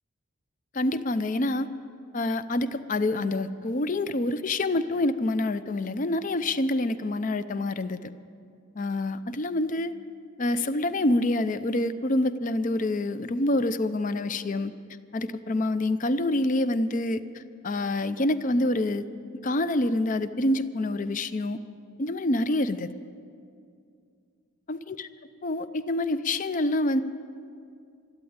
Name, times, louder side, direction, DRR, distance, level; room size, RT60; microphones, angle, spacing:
voice 1, 0.7-1.7 2.1-8.1 8.8-9.9 10.4-14.7 15.1-19.0 19.4-21.6 22.0-22.9 24.7-25.1 25.4-27.0, left 1 dB, 35° left, 13 dB, 0.5 m, -27 dB
13.5 x 12.0 x 8.8 m, 2.3 s
head